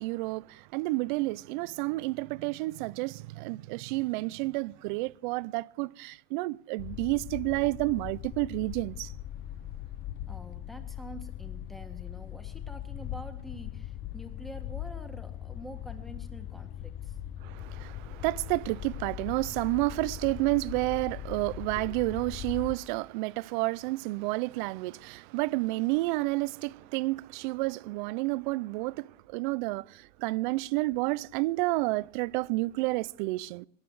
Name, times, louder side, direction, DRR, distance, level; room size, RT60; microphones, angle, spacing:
voice 1, 0.0-9.1 17.4-33.7, right 22 dB, 50° right, 0.4 m, -30 dB
sound 1, 6.8-22.8, left 12 dB, 25° left, 0.5 m, -40 dB
voice 2, 10.3-17.2, equal, ahead, 1.6 m, -47 dB
20.5 x 11.0 x 4.7 m
supercardioid pair, 145°, 33 cm